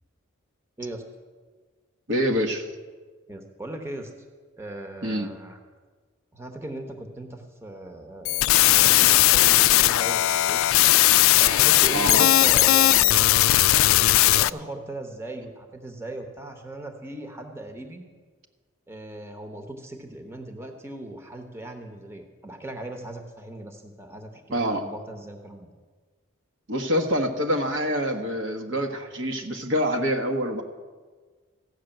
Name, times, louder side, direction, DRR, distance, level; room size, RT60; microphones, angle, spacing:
voice 1, 2.1-2.7 5.0-5.3 11.9-12.3 24.5-24.8 26.7-30.6, equal, 60° right, 4 dB, 1.2 m, -26 dB
voice 2, 3.3-4.1 4.6-5.6 6.3-10.6 11.4-13.3 14.0-18.0 18.9-25.7, right 1 dB, 10° right, 4 dB, 1.0 m, -38 dB
sound 1, 8.3-14.5, left 16 dB, 75° left, 0.3 m, -18 dB
15.0 x 6.5 x 9.0 m, 1.5 s
head